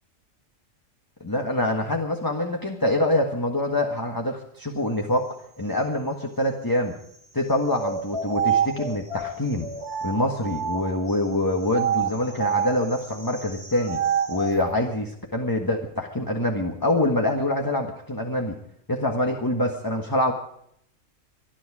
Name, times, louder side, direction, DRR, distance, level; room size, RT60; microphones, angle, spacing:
voice 1, 1.2-6.9 7.3-9.7 10.0-14.0 14.3-18.5 18.9-20.3, left 1 dB, 15° left, 2 dB, 1.5 m, -25 dB
sound 1, 7.7-11.1 11.7-14.6, right 7 dB, 25° right, 2.2 m, -28 dB
25.0 x 10.5 x 4.9 m, 0.70 s
omnidirectional pair, 1.4 m